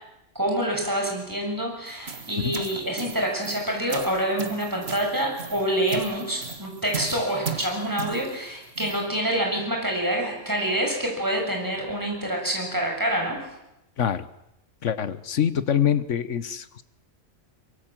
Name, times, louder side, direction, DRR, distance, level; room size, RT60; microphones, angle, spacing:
voice 1, 0.4-13.4, right 1 dB, 15° right, 0 dB, 6.9 m, -27 dB
sound 1, 1.9-9.1, right 5 dB, 55° right, 2.1 m, -37 dB
voice 2, 14.8-16.8, left 9 dB, 75° left, 14 dB, 1.4 m, -25 dB
23.5 x 23.0 x 7.6 m, 0.86 s
omnidirectional pair, 1.3 m